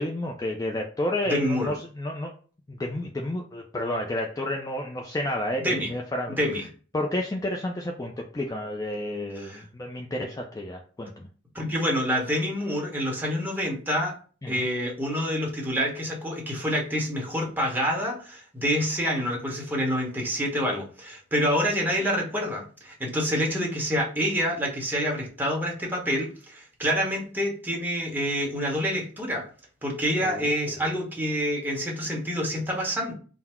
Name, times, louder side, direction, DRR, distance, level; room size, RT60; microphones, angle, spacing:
voice 1, 0.0-2.3 2.7-6.4 6.9-11.3 14.4-14.7 30.2-30.8, left 1 dB, 20° left, 1 dB, 0.4 m, -31 dB
voice 2, 1.3-1.7 5.6-5.9 6.4-6.6 9.4-9.6 11.5-14.1 14.5-29.4 29.8-33.1, equal, 10° right, -2 dB, 1.0 m, -27 dB
3.8 x 2.0 x 4.3 m, 0.39 s
head